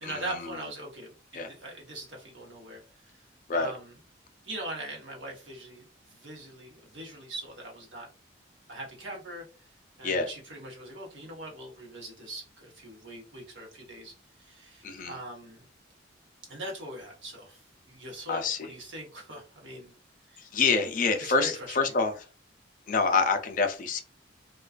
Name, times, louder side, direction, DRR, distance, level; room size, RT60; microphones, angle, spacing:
voice 1, 0.0-2.8 3.5-3.9 4.4-8.1 8.7-9.4 10.0-15.6 16.5-19.9 20.3-20.4 21.2-21.9, right 1 dB, 85° right, -1 dB, 1.0 m, -41 dB
voice 2, 14.8-15.1 18.3-18.7 20.4-22.1 22.9-24.0, left 4 dB, 45° left, 6 dB, 0.4 m, -26 dB
2.3 x 2.3 x 2.4 m, 0.33 s
head